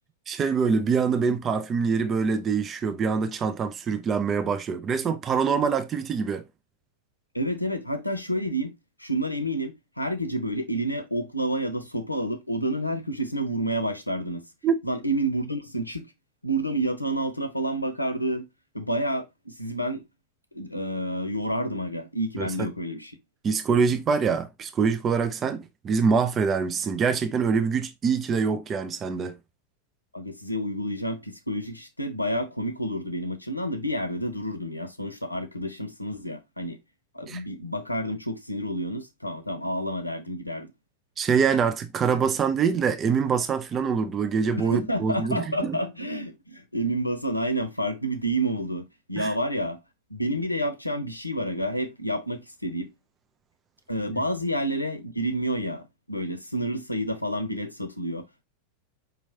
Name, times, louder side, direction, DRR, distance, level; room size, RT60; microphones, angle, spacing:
voice 1, 0.3-6.4 14.6-14.7 22.4-22.7 23.4-29.4 37.3-37.4 41.2-45.8 49.2-49.3, right 5 dB, 25° right, 0.5 m, -25 dB
voice 2, 7.3-8.7 9.0-14.4 14.8-16.0 16.4-18.4 18.7-20.0 20.5-23.1 30.1-36.8 37.1-40.7 44.6-49.8 50.1-52.9 53.9-58.4, right 1 dB, 85° left, 0.7 m, -29 dB
5.3 x 3.0 x 2.8 m
figure-of-eight pair, 90°, 0 cm